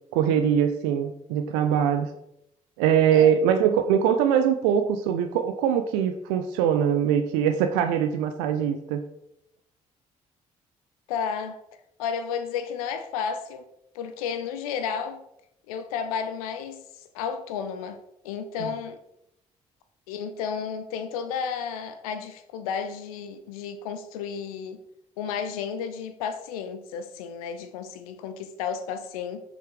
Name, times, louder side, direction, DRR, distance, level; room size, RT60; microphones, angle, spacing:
voice 1, 0.1-2.1 2.8-9.0 18.6-18.7, right 8 dB, 65° right, 8 dB, 0.7 m, -22 dB
voice 2, 11.1-11.6 12.0-13.6 13.9-15.2 15.7-16.8 17.1-18.0 18.2-19.0 20.1-24.8 25.2-29.4, left 7 dB, 70° left, 10 dB, 0.7 m, -32 dB
7.8 x 6.6 x 4.8 m, 0.80 s
figure-of-eight pair, 45°, 19 cm